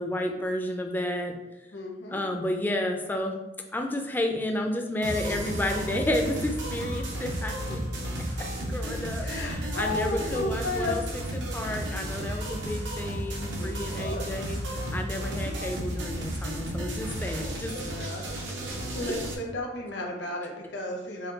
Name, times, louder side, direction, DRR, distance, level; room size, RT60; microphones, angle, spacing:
voice 1, 0.0-1.3 2.1-3.4 3.7-7.8 8.7-14.6 14.9-17.7, left 1 dB, 10° left, 3 dB, 0.3 m, -31 dB
voice 2, 1.7-2.2 5.1-5.2 9.2-11.0 13.6-13.7 13.9-14.2 15.4-15.5 17.7-18.3 18.9-21.3, left 2 dB, 75° left, 1 dB, 0.8 m, -33 dB
sound 1, 5.0-19.3, right 1 dB, 80° right, 0.7 m, -33 dB
4.3 x 2.3 x 3.8 m, 0.99 s
head